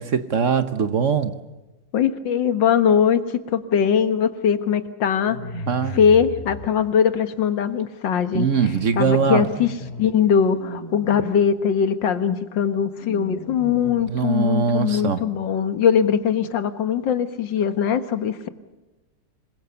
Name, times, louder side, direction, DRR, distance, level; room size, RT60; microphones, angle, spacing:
voice 1, 0.0-1.3 5.7-6.0 8.3-9.4 14.1-15.2, right 6 dB, 50° right, 1.2 m, -21 dB
voice 2, 1.9-9.7 10.0-18.5, left 7 dB, 90° left, 2.0 m, -21 dB
sound 1, 5.2-6.7 9.0-10.1 10.4-11.1 12.9-14.1, equal, 30° left, 3.8 m, -36 dB
26.5 x 21.5 x 7.0 m
omnidirectional pair, 1.9 m